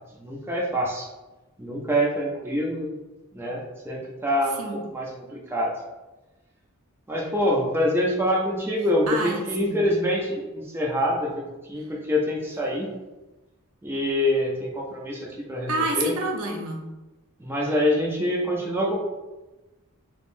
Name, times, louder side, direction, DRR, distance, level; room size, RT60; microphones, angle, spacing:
voice 1, 0.2-1.1 1.6-2.9 3.3-5.7 7.1-11.4 11.7-12.9 13.8-16.1 17.4-19.0, equal, 10° right, -2 dB, 0.4 m, -25 dB
voice 2, 9.1-9.8 15.7-16.8, right 2 dB, 70° right, 1 dB, 0.6 m, -28 dB
3.5 x 3.0 x 2.6 m, 1.1 s
head